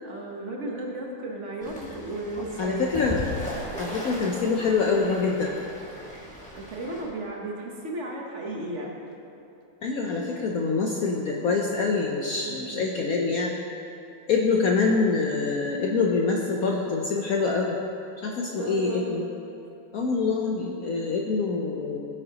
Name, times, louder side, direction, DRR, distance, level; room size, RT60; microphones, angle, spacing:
voice 1, 0.0-2.9 6.5-8.9 12.5-13.0 18.5-19.1, right 2 dB, 45° right, -1 dB, 1.1 m, -34 dB
Fowl / Bird, 1.6-7.0, left 1 dB, 5° left, 1.6 m, -38 dB
voice 2, 2.6-3.2 3.8-5.5 9.8-13.5 14.3-17.8 18.2-19.3 19.9-22.0, left 4 dB, 85° left, -1 dB, 0.7 m, -25 dB
16.5 x 6.6 x 2.9 m, 2.8 s
omnidirectional pair, 2.3 m